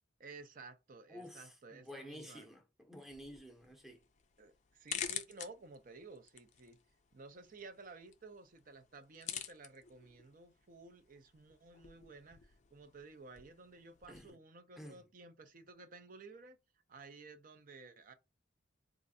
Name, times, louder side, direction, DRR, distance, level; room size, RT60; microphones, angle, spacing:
voice 1, 0.2-2.5 4.4-6.8 7.1-16.6 16.9-18.1, right 3 dB, 45° right, 0.5 m, -54 dB
voice 2, 1.1-2.6 2.9-4.0 14.1-14.3 14.8-15.0, equal, ahead, 0.7 m, -51 dB
sound 1, 3.1-14.3, left 9 dB, 35° left, 0.4 m, -49 dB
4.3 x 2.5 x 2.6 m
head